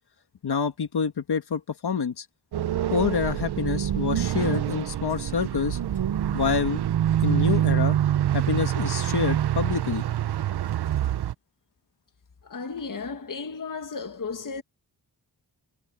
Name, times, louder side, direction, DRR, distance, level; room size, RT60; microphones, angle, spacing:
voice 1, 0.4-2.3 2.9-5.8 6.3-6.8 7.2-8.0 8.3-10.0, left 6 dB, 80° left, 1.7 m, -27 dB
sound 1, 2.5-11.3, right 11 dB, 80° right, 0.6 m, -25 dB
voice 2, 12.4-14.6, left 4 dB, 55° left, 1.8 m, -34 dB
wide cardioid pair, 145°, 39 cm